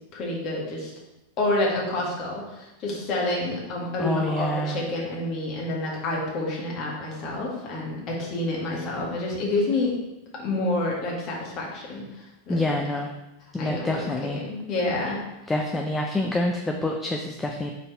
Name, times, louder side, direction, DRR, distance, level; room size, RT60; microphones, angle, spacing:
voice 1, 0.1-0.9 1.4-9.9 10.4-12.6 13.6-14.1 14.4-15.2, left 2 dB, 35° left, -4 dB, 1.8 m, -28 dB
voice 2, 4.0-4.8 12.5-13.1 13.5-14.4 15.5-17.7, left 1 dB, 10° left, 2 dB, 0.5 m, -27 dB
5.3 x 4.1 x 4.4 m, 0.97 s
figure-of-eight pair, 90°, 0 cm